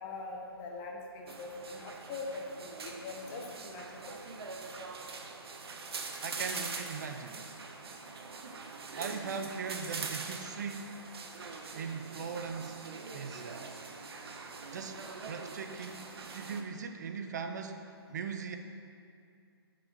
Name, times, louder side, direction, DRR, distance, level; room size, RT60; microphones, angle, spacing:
voice 1, 0.0-4.2, left 3 dB, 20° left, 1 dB, 0.5 m, -42 dB
sound 1, 1.3-16.6, right 4 dB, 70° right, 0.7 m, -43 dB
voice 2, 6.2-7.4 8.9-11.0 11.7-12.8 13.1-13.7 14.7-17.8 18.1-18.6, right 5 dB, 45° right, 6 dB, 0.4 m, -39 dB
7.2 x 4.8 x 3.9 m, 2.4 s
hypercardioid pair, 160°, 13 cm